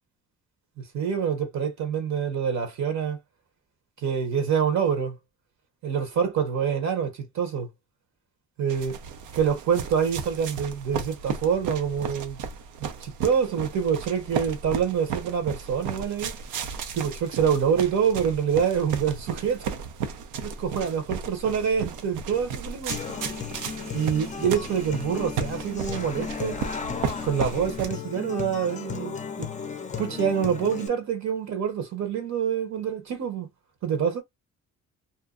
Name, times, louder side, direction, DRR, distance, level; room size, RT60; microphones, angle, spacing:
voice 1, 0.8-3.2 4.0-5.2 5.8-7.7 8.6-8.9 9.3-12.4 12.8-16.3 16.9-19.6 20.4-23.0 23.9-26.6 27.2-29.5 30.0-33.5 33.8-34.2, right 7 dB, 65° right, 1.0 m, -26 dB
sound 1, 8.7-27.9, right 6 dB, 90° right, 0.6 m, -35 dB
Human voice / Acoustic guitar, 22.9-30.9, left 6 dB, 25° left, 0.4 m, -35 dB
2.6 x 2.2 x 2.4 m
cardioid pair, 90°, 30 cm